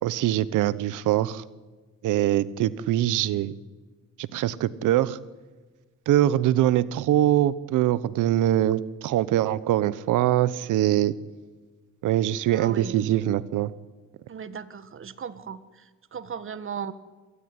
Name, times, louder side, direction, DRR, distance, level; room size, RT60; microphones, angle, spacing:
voice 1, 0.0-1.4 2.0-3.6 4.2-5.2 6.1-11.1 12.0-13.7, right 13 dB, 85° right, 17 dB, 1.1 m, -23 dB
voice 2, 12.5-13.0 14.3-15.6 16.1-16.9, right 7 dB, 45° right, 13 dB, 1.7 m, -36 dB
26.0 x 18.5 x 9.7 m, 1.3 s
cardioid pair, 90°, 30 cm